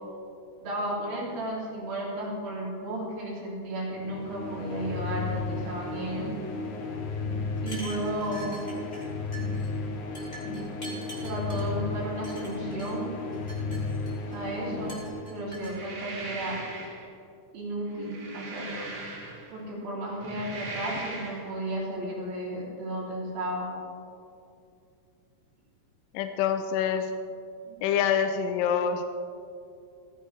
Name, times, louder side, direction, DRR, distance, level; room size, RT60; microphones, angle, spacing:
voice 1, 0.6-6.3 7.6-8.5 11.2-13.1 14.3-15.0 15.3-16.6 17.5-18.9 19.5-23.7 27.7-27.8, right 1 dB, 90° right, -5 dB, 5.1 m, -33 dB
sound 1, 4.0-15.8, left 3 dB, 65° left, 2.6 m, -34 dB
sound 2, 7.6-9.1 9.3-9.7 10.1-11.7 12.2-12.9 13.3-14.4 14.9-15.8, right 1 dB, 15° left, 2.7 m, -44 dB
sound 3, 15.6-17.1 17.9-19.6 20.1-21.5, right 2 dB, 70° right, 4.7 m, -39 dB
voice 2, 26.1-27.1 27.8-29.0, left 8 dB, 80° left, 6 dB, 2.3 m, -26 dB
18.0 x 15.0 x 3.4 m, 2.5 s
omnidirectional pair, 4.0 m